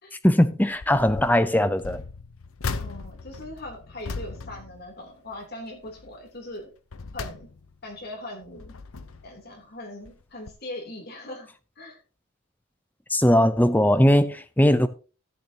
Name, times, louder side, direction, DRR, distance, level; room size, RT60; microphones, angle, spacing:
voice 1, 0.2-2.0 13.1-14.9, left 1 dB, 10° left, 0.6 m, -19 dB
sound 1, 0.7-1.4 1.8-5.5 5.8-6.2 6.7-7.9 8.4-9.4 10.1-10.2 10.5-10.6, left 4 dB, 85° left, 0.8 m, -37 dB
voice 2, 2.8-6.7 7.1-7.5 7.8-8.7 9.2-11.5 11.8-12.0, left 1 dB, 50° left, 3.2 m, -40 dB
13.5 x 8.8 x 2.9 m
head